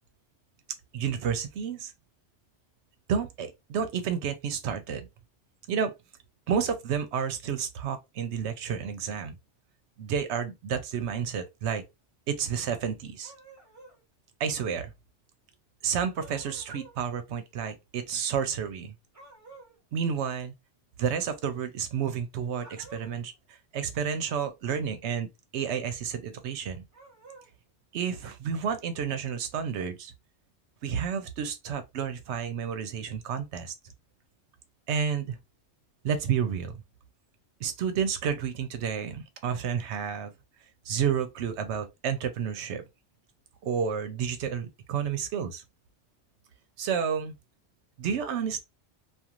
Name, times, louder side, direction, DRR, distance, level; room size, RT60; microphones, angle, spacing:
voice 1, 0.9-1.9 3.1-5.1 5.7-5.9 6.5-9.3 10.0-11.8 12.3-13.3 14.4-14.9 15.8-18.9 19.9-20.5 21.0-25.3 25.5-26.8 27.9-30.1 30.8-33.7 34.9-35.4 36.0-36.8 37.6-40.3 40.9-42.8 43.6-45.6 46.8-47.3 48.0-48.6, right 7 dB, 75° right, 0.9 m, -30 dB
sound 1, 13.2-14.0 16.1-17.0 19.1-19.8 22.5-23.3 26.9-27.5, right 2 dB, 15° right, 0.7 m, -51 dB
2.4 x 2.4 x 2.8 m
omnidirectional pair, 1.2 m